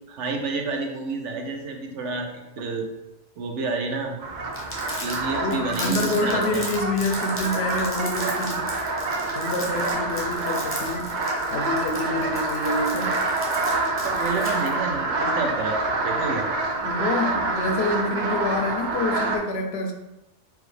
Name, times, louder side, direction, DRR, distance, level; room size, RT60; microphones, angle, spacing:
voice 1, 0.1-2.9 3.4-4.2 5.0-6.6 14.0-16.5, right 3 dB, 85° right, 3 dB, 1.0 m, -30 dB
sound 1, 4.2-19.4, right 3 dB, 55° right, 0.6 m, -27 dB
Crumpling crinkling, 4.5-14.7, left 1 dB, 15° left, 0.6 m, -37 dB
voice 2, 5.3-8.7 9.3-11.1 11.5-13.1 16.8-19.9, left 2 dB, 70° left, 4 dB, 0.8 m, -27 dB
4.7 x 2.4 x 3.2 m, 0.96 s
omnidirectional pair, 1.2 m